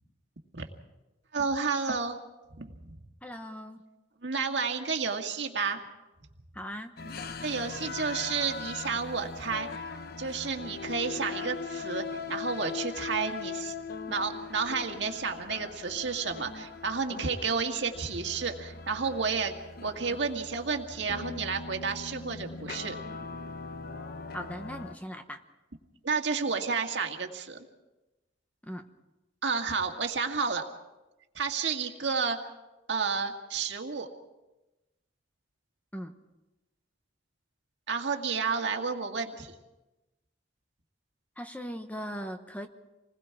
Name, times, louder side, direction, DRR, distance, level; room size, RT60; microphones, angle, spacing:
voice 1, 1.3-2.2 2.6-2.7 4.2-5.8 7.4-9.7 10.2-13.7 14.1-19.5 19.8-23.0 26.0-27.6 29.4-30.6 31.4-32.4 32.9-34.1 37.9-39.5, right 5 dB, 70° right, 3 dB, 1.9 m, -31 dB
voice 2, 3.2-3.8 6.5-6.9 24.3-25.4 28.6-28.9 35.9-36.1 41.4-42.7, equal, 10° left, 7 dB, 1.0 m, -39 dB
sound 1, 7.0-25.0, left 4 dB, 55° left, 0.9 m, -40 dB
27.5 x 20.5 x 4.7 m, 1.1 s
head